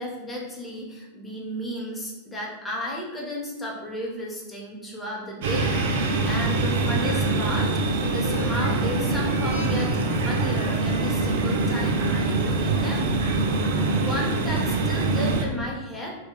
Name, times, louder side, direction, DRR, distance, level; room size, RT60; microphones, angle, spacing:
voice 1, 0.0-7.7 8.1-13.2 13.5-16.1, equal, 10° left, -4 dB, 0.6 m, -33 dB
sound 1, 5.4-15.5, right 3 dB, 55° right, 0.3 m, -24 dB
sound 2, 5.9-10.4, left 2 dB, 65° left, 0.6 m, -39 dB
2.1 x 2.1 x 3.7 m, 1.1 s
figure-of-eight pair, 90°, 0 cm